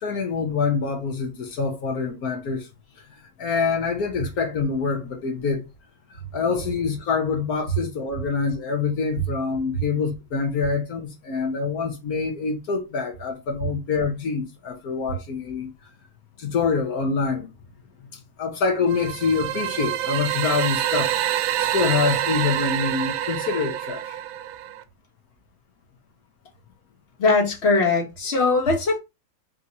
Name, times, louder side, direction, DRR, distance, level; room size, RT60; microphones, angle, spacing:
voice 1, 0.0-2.7 3.1-5.6 6.1-15.7 16.4-17.5 18.1-21.1 21.6-24.2, left 5 dB, 60° left, 1.1 m, -26 dB
sound 1, 18.9-24.8, right 11 dB, 80° right, 1.3 m, -26 dB
voice 2, 27.2-29.0, left 3 dB, 35° left, 1.5 m, -20 dB
3.7 x 2.9 x 4.0 m
omnidirectional pair, 2.2 m